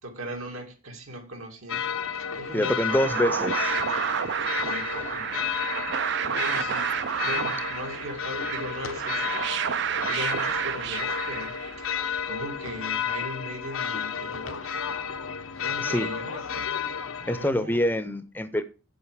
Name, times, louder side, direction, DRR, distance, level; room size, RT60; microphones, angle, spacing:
voice 1, 0.0-4.2 4.6-5.6 6.2-12.0 12.2-14.8 15.6-17.8, equal, 85° right, 2.7 m, -39 dB
sound 1, 1.7-17.5, left 7 dB, 80° left, 0.9 m, -32 dB
voice 2, 2.5-3.7 15.8-16.1 17.3-18.6, left 1 dB, 10° left, 0.6 m, -25 dB
sound 2, 2.6-12.0, right 8 dB, 55° right, 0.4 m, -30 dB
8.3 x 7.8 x 4.9 m
head